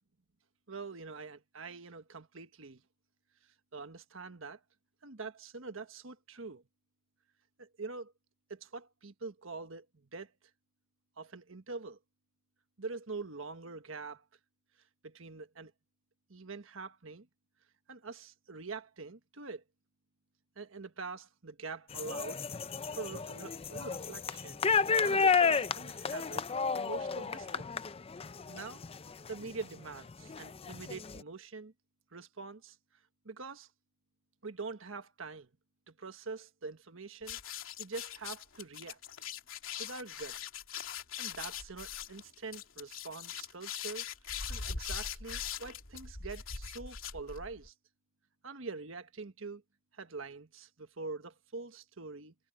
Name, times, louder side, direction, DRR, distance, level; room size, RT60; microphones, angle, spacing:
voice 1, 0.7-2.8 3.7-4.6 5.0-6.6 7.6-8.1 8.5-9.8 10.1-10.3 11.2-12.0 12.8-14.2 15.0-15.7 16.3-17.3 17.9-19.6 20.6-22.4 23.0-24.7 25.0-26.4 26.7-27.7 28.5-28.8 29.3-31.7 32.1-32.7 33.2-33.7 34.4-35.5 35.9-37.4 37.8-39.0 39.8-40.4 41.2-44.1 44.5-47.7 48.4-49.6 49.9-52.3, right 4 dB, 75° right, 1.4 m, -44 dB
sound 1, 21.9-29.6 30.1-31.2, left 5 dB, 30° left, 0.5 m, -32 dB
sound 2, 37.2-47.7, left 7 dB, 75° left, 3.0 m, -41 dB
head